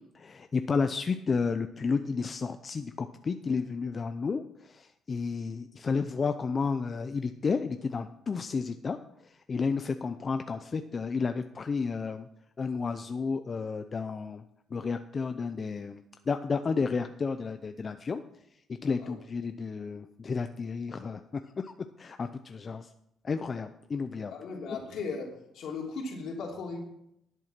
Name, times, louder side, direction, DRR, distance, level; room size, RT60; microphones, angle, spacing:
voice 1, 0.1-9.0 9.2-12.3 12.6-14.4 14.7-18.2 18.8-22.9 23.2-24.3, left 5 dB, 40° left, 8 dB, 0.6 m, -32 dB
voice 2, 24.3-26.8, left 4 dB, 75° left, 0 dB, 3.0 m, -37 dB
11.0 x 8.1 x 6.0 m, 0.78 s
cardioid pair, 90°, 0 cm